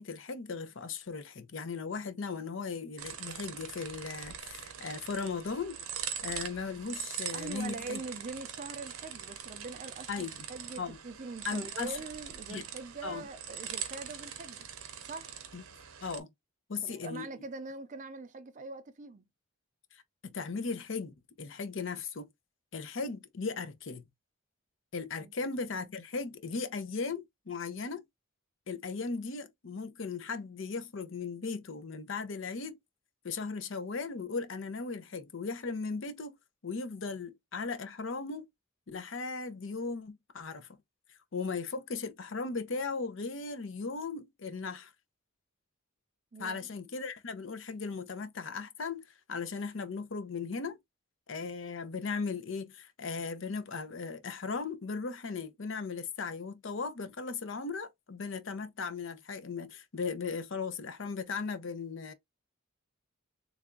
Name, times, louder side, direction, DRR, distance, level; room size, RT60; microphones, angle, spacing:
voice 1, 0.0-5.8 6.2-8.0 10.1-10.4 10.8-11.0 11.4-12.0 12.5-12.6 13.0-13.2 15.5-15.6 16.0-16.3 16.7-17.3 19.9-22.3 22.7-24.0 24.9-28.0 28.7-32.8 33.2-36.4 36.6-38.5 38.9-40.7 41.3-44.9 46.4-50.8 51.3-62.1, left 4 dB, 65° left, 0.6 m, -37 dB
sound 1, 3.0-16.2, right 8 dB, 90° right, 0.8 m, -42 dB
voice 2, 7.3-14.7 15.0-15.4 16.8-19.2 25.2-25.3 46.3-46.6, right 3 dB, 35° right, 0.5 m, -43 dB
3.4 x 2.3 x 3.7 m
head